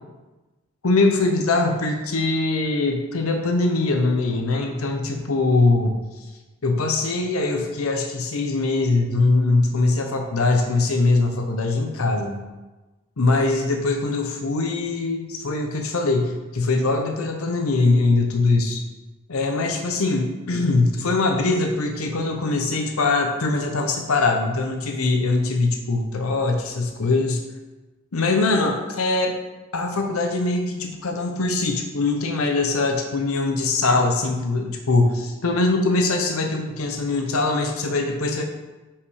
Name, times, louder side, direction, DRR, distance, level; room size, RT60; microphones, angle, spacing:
voice 1, 0.8-6.0 6.6-12.4 13.2-18.8 19.3-27.4 28.1-29.3 29.7-38.4, left 3 dB, 85° left, 3 dB, 0.8 m, -22 dB
5.6 x 5.0 x 4.8 m, 1.2 s
head